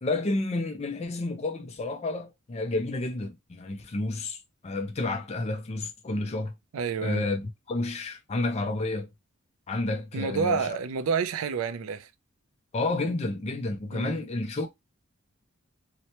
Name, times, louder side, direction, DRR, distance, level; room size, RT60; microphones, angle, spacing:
voice 1, 0.0-6.5 7.0-9.1 9.7-10.8 12.7-14.7, left 2 dB, 30° left, 0.4 m, -30 dB
voice 2, 6.7-7.3 10.1-12.1 13.9-14.2, right 6 dB, 85° right, 0.4 m, -29 dB
2.9 x 2.1 x 2.8 m
head